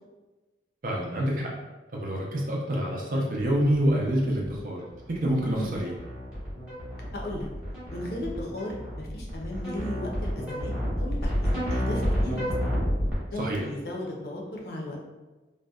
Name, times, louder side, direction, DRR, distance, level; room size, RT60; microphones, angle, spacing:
voice 1, 0.8-1.5 1.9-4.8 5.1-5.9 13.4-13.6, equal, 50° right, -2 dB, 0.5 m, -27 dB
sound 1, 3.9-13.1, equal, 5° right, 0.8 m, -30 dB
voice 2, 7.1-7.5 7.9-12.5 13.3-15.0, left 1 dB, 60° left, -1 dB, 0.5 m, -35 dB
2.6 x 2.1 x 2.3 m, 1.2 s
head